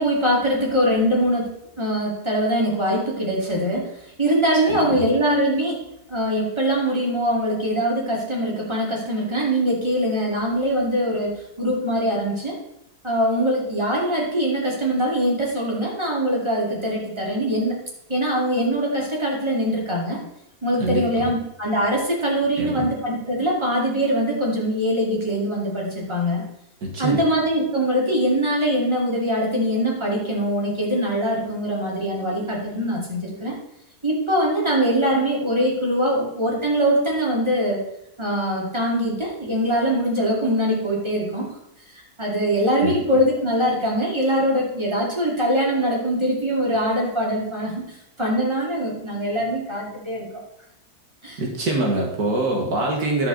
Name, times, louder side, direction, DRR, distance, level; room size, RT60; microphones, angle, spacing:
voice 1, 0.0-3.9 4.2-5.8 6.1-12.6 13.0-17.8 18.1-20.2 20.6-26.4 27.0-33.5 34.0-37.8 38.2-41.5 42.2-47.7 48.2-50.3 51.2-51.4, equal, 15° right, -3 dB, 2.6 m, -22 dB
voice 2, 4.7-5.0 20.8-21.3 22.6-22.9 26.8-27.2 42.8-42.9 51.4-53.3, right 2 dB, 80° right, 1 dB, 2.0 m, -24 dB
10.5 x 7.2 x 3.9 m, 0.80 s
omnidirectional pair, 1.6 m